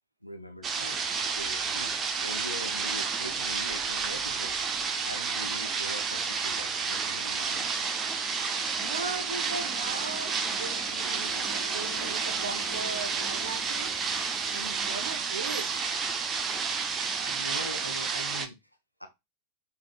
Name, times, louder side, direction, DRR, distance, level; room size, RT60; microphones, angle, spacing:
voice 1, 0.2-1.0 1.3-7.7 8.2-8.3 14.3-14.4 17.2-18.6 19.0-19.1, equal, 90° left, 0.6 m, -42 dB
sound 1, 0.6-18.5, right 5 dB, 25° right, 0.5 m, -31 dB
sound 2, 0.7-18.2, left 1 dB, 15° left, 1.5 m, -48 dB
voice 2, 8.8-13.9 14.5-15.7, right 4 dB, 70° right, 0.6 m, -38 dB
5.1 x 2.6 x 2.3 m
figure-of-eight pair, 90°, 0 cm